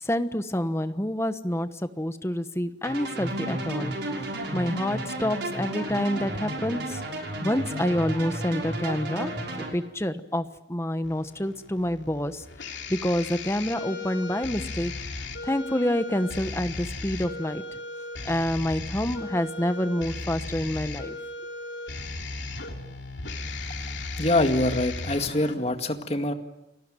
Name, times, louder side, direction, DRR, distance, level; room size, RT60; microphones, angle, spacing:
voice 1, 0.0-3.9 4.5-7.0 7.4-9.3 9.7-12.4 12.9-14.9 15.4-17.6 18.2-21.2, left 1 dB, 15° left, 10 dB, 1.2 m, -27 dB
sound 1, 2.8-9.7, right 1 dB, 70° right, 6.1 m, -32 dB
sound 2, 11.0-25.5, left 3 dB, 85° left, 3.0 m, -36 dB
voice 2, 24.1-26.3, left 1 dB, 35° left, 6 dB, 2.0 m, -24 dB
29.5 x 19.0 x 9.1 m, 0.95 s
head